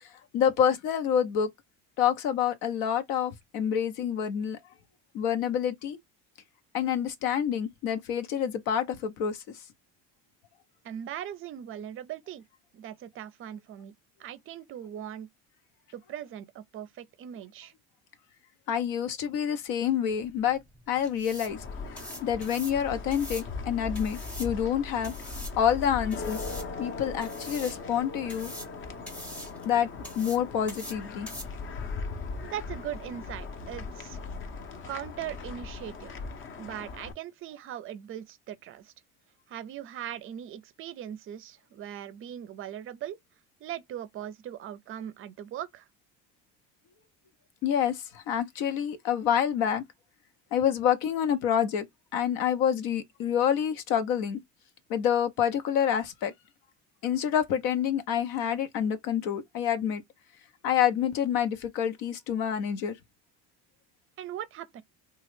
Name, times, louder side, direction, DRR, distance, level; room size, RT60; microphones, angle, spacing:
voice 1, 0.3-1.5 2.0-4.6 5.1-6.0 6.7-9.4 18.7-20.6 20.9-21.6 22.2-25.1 25.6-26.4 26.8-28.5 29.6-29.9 30.2-31.3 47.6-49.8 50.5-51.9 52.1-54.4 54.9-56.3 57.0-60.0 60.6-62.9, left 9 dB, 75° left, 0.7 m, -27 dB
voice 2, 10.8-12.4 12.7-13.9 14.2-15.3 15.9-17.7 32.4-34.2 34.9-36.1 36.6-38.9 39.5-43.2 43.6-45.9 64.2-64.8, right 10 dB, 40° right, 0.4 m, -39 dB
sound 1, 20.1-33.6, right 1 dB, 5° left, 0.8 m, -46 dB
sound 2, 21.5-37.1, left 4 dB, 35° left, 0.6 m, -39 dB
3.0 x 2.3 x 3.1 m
cardioid pair, 115°, 34 cm